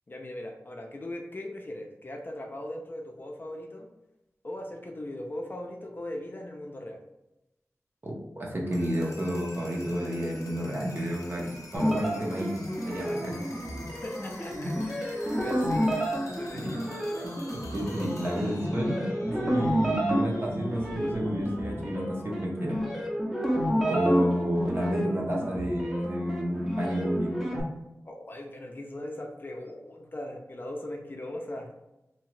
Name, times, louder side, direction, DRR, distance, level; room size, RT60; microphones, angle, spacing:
voice 1, 0.1-3.9 4.4-7.0 14.0-14.8 15.0-16.9 17.2-17.3 28.0-31.7, left 1 dB, 40° left, 2 dB, 0.4 m, -39 dB
voice 2, 8.0-12.5 12.9-13.4 17.7-22.8 23.9-27.4, equal, 45° right, -2 dB, 0.8 m, -30 dB
sound 1, 8.6-22.4, left 1 dB, 90° left, 0.5 m, -47 dB
sound 2, 11.7-27.6, equal, 5° right, 0.6 m, -30 dB
2.7 x 2.3 x 3.0 m, 0.93 s
wide cardioid pair, 80°, 5 cm